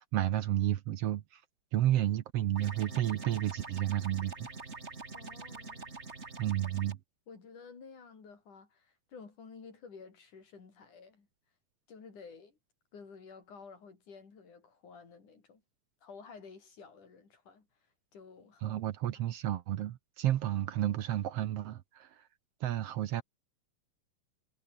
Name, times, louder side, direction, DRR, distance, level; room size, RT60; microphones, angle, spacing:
voice 1, 0.0-1.4 1.7-4.5 6.4-7.0 18.6-22.3 22.6-23.2, right 12 dB, 65° right, 1.6 m, -31 dB
sound 1, 2.6-6.9, right 4 dB, 25° right, 2.2 m, -45 dB
voice 2, 5.1-6.0 6.8-6.9 7.3-11.3 11.9-12.6 12.9-15.6 16.0-17.7 18.1-18.8, left 5 dB, 70° left, 6.5 m, -52 dB
omnidirectional pair, 3.7 m